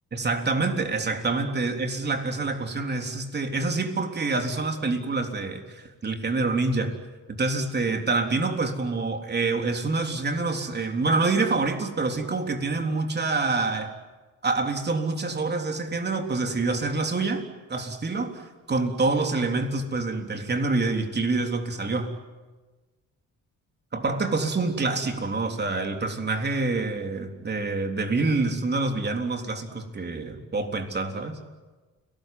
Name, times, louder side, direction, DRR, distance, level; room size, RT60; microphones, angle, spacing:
voice 1, 0.1-6.9 7.3-13.9 14.4-17.4 17.7-22.1 23.9-31.4, right 3 dB, 35° right, 4 dB, 3.7 m, -26 dB
30.0 x 19.0 x 9.3 m, 1.3 s
cardioid pair, 90°, 30 cm